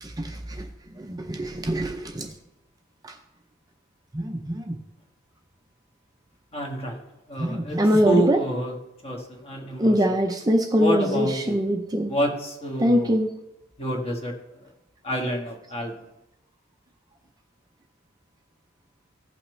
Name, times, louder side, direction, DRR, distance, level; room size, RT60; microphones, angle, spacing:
voice 1, 0.0-0.7 0.9-2.3 3.0-3.2 4.1-4.8 7.4-8.4 9.8-12.1 12.8-13.4, equal, 20° right, 4 dB, 0.6 m, -23 dB
voice 2, 6.5-7.8 8.0-8.7 9.0-9.9 10.8-11.6 12.1-13.2 13.8-14.3 14.6-14.7 15.0-15.9, right 1 dB, 30° left, 1 dB, 1.6 m, -28 dB
16.0 x 5.7 x 3.2 m, 0.88 s
head